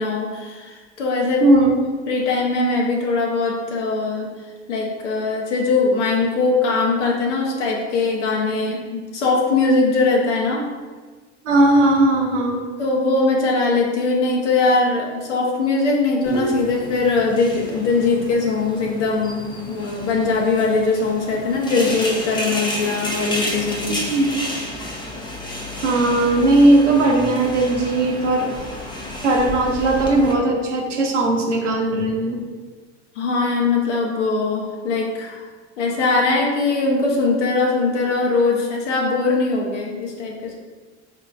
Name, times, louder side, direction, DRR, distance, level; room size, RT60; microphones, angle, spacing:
voice 1, 0.0-1.4 2.1-4.3 4.7-10.6 12.8-24.1 33.1-35.5 35.8-40.6, left 3 dB, 80° left, -1 dB, 0.8 m, -21 dB
voice 2, 1.4-1.7 11.4-12.6 23.9-24.4 25.8-28.5 29.2-32.4, right 2 dB, 90° right, 1 dB, 0.7 m, -17 dB
sound 1, 16.2-30.3, equal, 15° left, 0.5 m, -31 dB
3.9 x 3.1 x 2.3 m, 1.4 s
hypercardioid pair, 90°, 35 cm